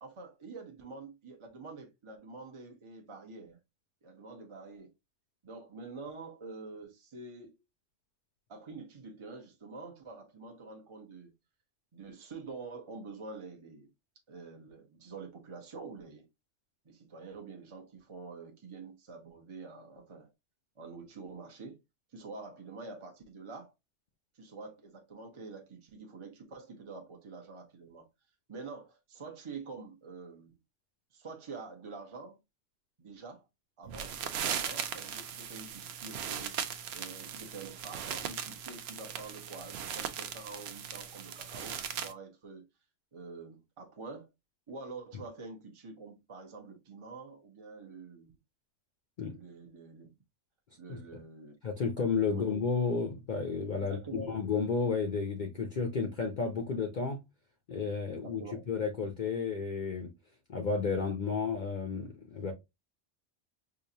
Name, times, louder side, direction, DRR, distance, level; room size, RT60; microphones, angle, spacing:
voice 1, 0.0-3.6 4.0-4.9 5.4-7.5 8.5-11.3 11.9-13.9 14.3-16.3 16.8-20.3 20.8-21.8 22.1-23.7 24.4-28.1 28.5-30.5 31.1-32.4 33.0-33.5 33.8-36.6 36.9-42.6 43.1-44.3 44.7-48.3 49.3-50.1 50.8-51.5 52.3-52.5 53.8-54.4 58.1-58.6, right 4 dB, 30° right, 0.7 m, -46 dB
sound 1, 33.9-42.1, right 8 dB, 65° right, 0.8 m, -38 dB
voice 2, 51.6-57.2 57.7-60.1 60.5-62.5, left 5 dB, 50° left, 0.7 m, -32 dB
4.8 x 2.4 x 2.7 m
omnidirectional pair, 1.2 m